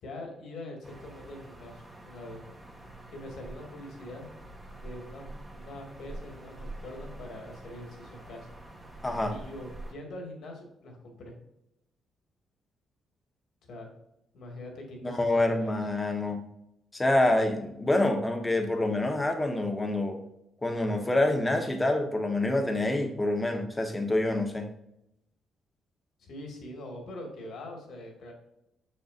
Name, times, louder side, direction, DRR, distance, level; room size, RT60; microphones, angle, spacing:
voice 1, 0.0-2.4 3.1-4.3 4.8-8.5 9.3-11.4 13.6-13.9 14.3-15.7 26.2-28.3, left 1 dB, 65° left, 1 dB, 2.3 m, -43 dB
sound 1, 0.8-9.9, right 2 dB, 15° right, 1.8 m, -46 dB
voice 2, 9.0-9.3 15.0-16.4 16.9-20.2 20.6-24.7, left 2 dB, 15° left, 4 dB, 1.3 m, -27 dB
6.6 x 6.5 x 2.7 m, 0.83 s
cardioid pair, 90°, 0 cm